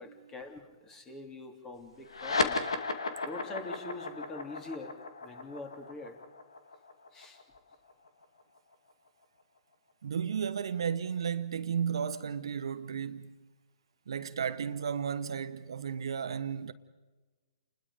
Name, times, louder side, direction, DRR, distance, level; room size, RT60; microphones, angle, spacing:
voice 1, 0.0-2.7 3.2-4.9 5.2-6.2 7.1-7.4, left 2 dB, 15° left, 3.1 m, -44 dB
sound 1, 2.1-8.9, left 3 dB, 75° left, 2.3 m, -35 dB
voice 2, 10.0-13.3 14.1-16.7, right 7 dB, 65° right, 1.0 m, -34 dB
30.0 x 21.0 x 5.1 m
figure-of-eight pair, 130°, 3 cm